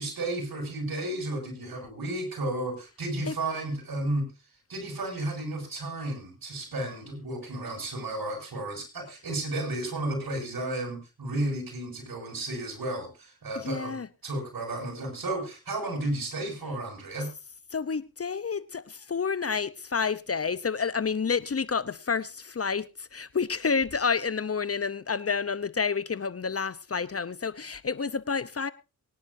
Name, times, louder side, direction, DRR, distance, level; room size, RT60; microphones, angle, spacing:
voice 1, 0.0-4.3 4.7-14.0 14.2-17.3, right 1 dB, 70° right, 6.9 m, -33 dB
voice 2, 13.6-14.1 17.7-28.7, left 5 dB, 40° left, 0.8 m, -29 dB
23.5 x 10.5 x 2.7 m
cardioid pair, 50°, 37 cm